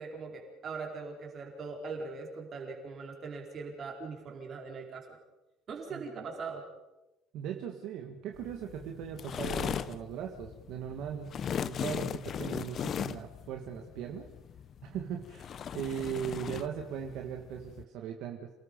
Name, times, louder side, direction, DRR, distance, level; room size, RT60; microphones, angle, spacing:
voice 1, 0.0-5.2 5.7-6.6, right 4 dB, 30° right, 1 dB, 4.5 m, -41 dB
voice 2, 7.3-11.4 11.6-14.3 14.8-18.5, right 8 dB, 55° right, 3 dB, 1.7 m, -39 dB
sound 1, 8.3-17.8, left 8 dB, 35° left, 0.6 m, -38 dB
28.5 x 18.5 x 5.3 m, 0.99 s
cardioid pair, 165°, 0 cm